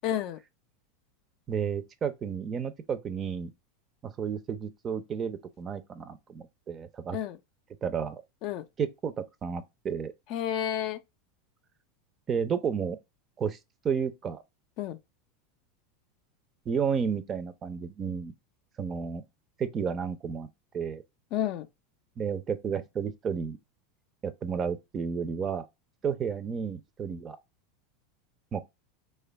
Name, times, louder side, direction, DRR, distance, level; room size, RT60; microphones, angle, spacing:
voice 1, 0.0-0.4 7.1-7.4 8.4-8.7 10.3-11.0 14.8-15.0 21.3-21.7, left 11 dB, 55° left, 0.4 m, -30 dB
voice 2, 1.5-3.5 4.0-7.2 7.8-8.2 8.8-10.1 12.3-13.0 13.4-13.6 13.8-14.4 16.7-18.3 18.8-19.2 19.6-20.5 20.7-21.0 22.2-23.6 24.2-25.7 26.0-27.4 28.5-28.6, right 7 dB, 30° right, 0.5 m, -32 dB
3.3 x 2.3 x 3.2 m
hypercardioid pair, 85°, 0 cm